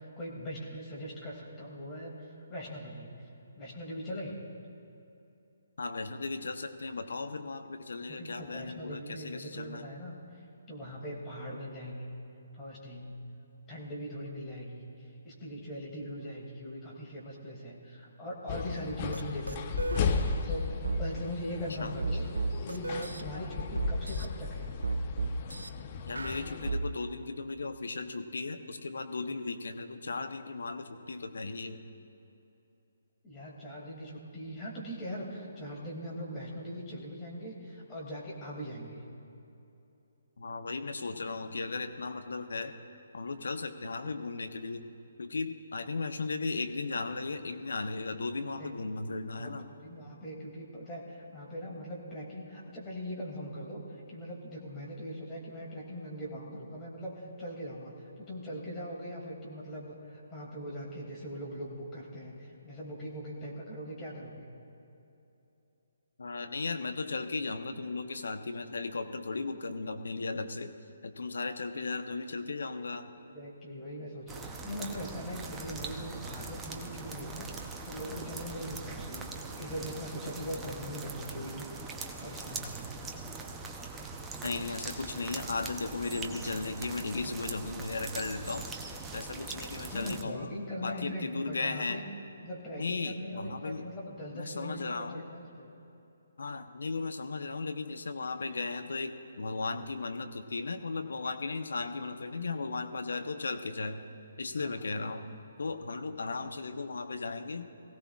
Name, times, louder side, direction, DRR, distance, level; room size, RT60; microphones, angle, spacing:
voice 1, 0.0-3.1 3.6-4.4 8.1-10.2 10.7-12.1 12.5-13.2 13.7-14.9 15.2-19.9 20.5-22.3 22.6-24.7 33.2-39.0 41.1-41.2 48.4-48.9 49.4-64.4 73.3-81.7 82.2-82.9 89.9-92.1 92.4-95.7 104.6-104.9, equal, 15° left, -4 dB, 2.5 m, -41 dB
voice 2, 5.8-9.8 21.8-22.0 26.1-31.8 40.4-42.7 43.1-44.8 45.2-49.7 66.2-70.7 71.0-73.0 84.4-90.5 90.8-92.0 92.8-93.8 94.3-95.2 96.4-104.0 104.4-105.3 105.6-107.7, left 3 dB, 65° left, 7 dB, 1.0 m, -36 dB
sound 1, 18.5-26.7, left 5 dB, 35° left, 0.9 m, -35 dB
sound 2, 19.1-19.2 19.5-20.0 20.8-21.0 22.0-23.2 23.8-24.3 24.8-25.7 26.2-26.8, right 3 dB, 75° right, 0.6 m, -32 dB
sound 3, 74.3-90.2, right 3 dB, 10° right, 0.8 m, -41 dB
22.0 x 16.0 x 2.4 m, 2.8 s
figure-of-eight pair, 140°, 0 cm